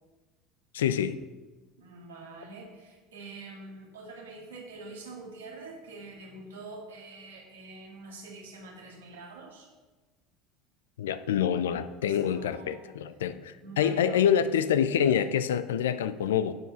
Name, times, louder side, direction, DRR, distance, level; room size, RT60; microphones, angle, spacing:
voice 1, 0.7-1.1 11.0-16.5, left 9 dB, 80° left, 13 dB, 0.4 m, -26 dB
voice 2, 1.8-9.7 12.0-12.9 13.6-14.3, right 3 dB, 85° right, -1 dB, 2.1 m, -45 dB
11.0 x 4.7 x 5.6 m, 1.3 s
hypercardioid pair, 75°, 0 cm